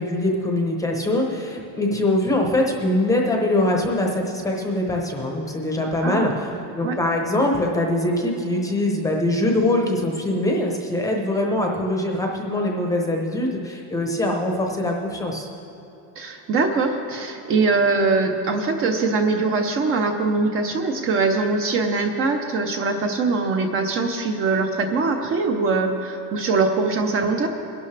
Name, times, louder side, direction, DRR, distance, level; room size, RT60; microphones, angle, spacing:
voice 1, 0.0-15.5, left 1 dB, 10° left, 1 dB, 0.8 m, -23 dB
voice 2, 6.0-6.4 6.8-7.0 16.2-27.5, right 3 dB, 35° right, 4 dB, 0.7 m, -22 dB
21.5 x 11.5 x 3.3 m, 2.9 s
cardioid pair, 175°, 40 cm